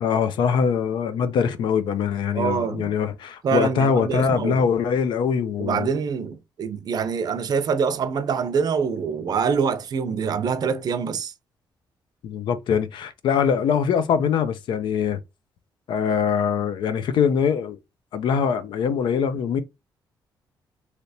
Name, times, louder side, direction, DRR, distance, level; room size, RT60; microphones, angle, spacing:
voice 1, 0.0-5.9 12.2-15.2 15.9-17.8 18.1-19.6, left 7 dB, 75° left, 0.5 m, -23 dB
voice 2, 2.3-3.0 3.4-4.7 5.6-11.3, right 6 dB, 55° right, 0.5 m, -25 dB
3.3 x 2.9 x 2.7 m
cardioid pair, 110°, 8 cm